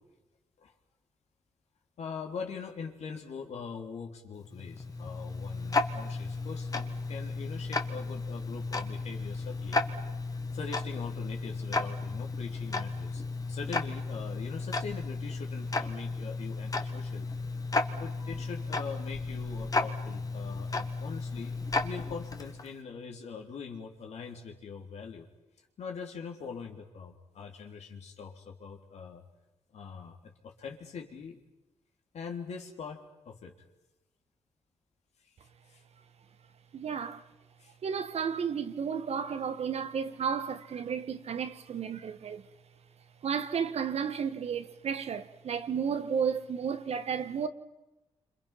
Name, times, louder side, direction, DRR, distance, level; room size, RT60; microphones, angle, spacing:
voice 1, 2.0-9.8 10.3-13.2 13.5-17.3 18.0-21.6 21.8-25.3 25.8-29.2 29.7-31.4 32.1-33.6 35.7-35.8 37.6-37.7, left 5 dB, 75° left, 3.6 m, -42 dB
Tick-tock, 4.4-22.7, left 3 dB, 30° left, 2.0 m, -34 dB
voice 2, 36.7-37.2 37.8-42.4 43.2-47.5, right 7 dB, 70° right, 1.6 m, -32 dB
28.0 x 26.5 x 5.9 m
cardioid pair, 80°, 11 cm